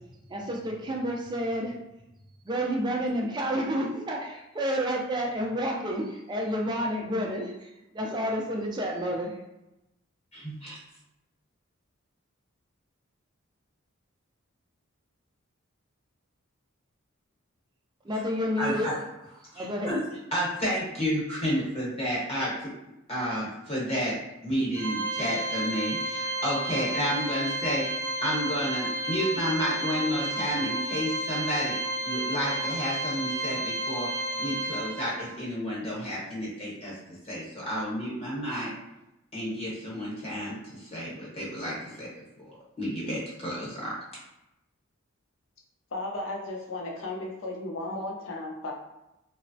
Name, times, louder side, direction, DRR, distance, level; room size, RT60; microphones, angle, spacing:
voice 1, 0.3-1.7 2.4-7.7 7.9-9.3 18.0-18.9 19.6-20.0, equal, 20° right, -1 dB, 0.4 m, -29 dB
voice 2, 10.3-10.8 18.6-19.0 19.5-20.0 20.3-22.7 23.1-24.2 24.4-31.8 32.0-34.1 34.4-37.0 37.2-38.7 39.3-42.1 42.4-44.0, equal, 30° left, -7 dB, 1.0 m, -31 dB
Organ, 24.7-35.4, right 1 dB, 85° right, 0.5 m, -32 dB
voice 3, 45.9-48.7, left 2 dB, 65° left, 0 dB, 0.5 m, -35 dB
3.0 x 2.0 x 2.6 m, 0.91 s
head